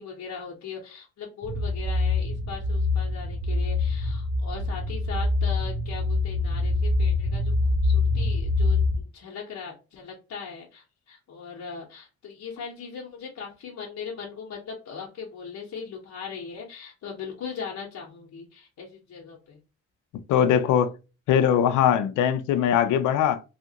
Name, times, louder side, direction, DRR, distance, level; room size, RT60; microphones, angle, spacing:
voice 1, 0.0-7.5 7.8-19.6, left 6 dB, 65° left, 0.9 m, -39 dB
sound 1, 1.4-9.0, left 3 dB, 35° right, 0.5 m, -25 dB
voice 2, 20.3-20.9 21.3-23.4, left 9 dB, 80° left, 0.5 m, -21 dB
2.8 x 2.4 x 2.8 m
cardioid pair, 90°, 30 cm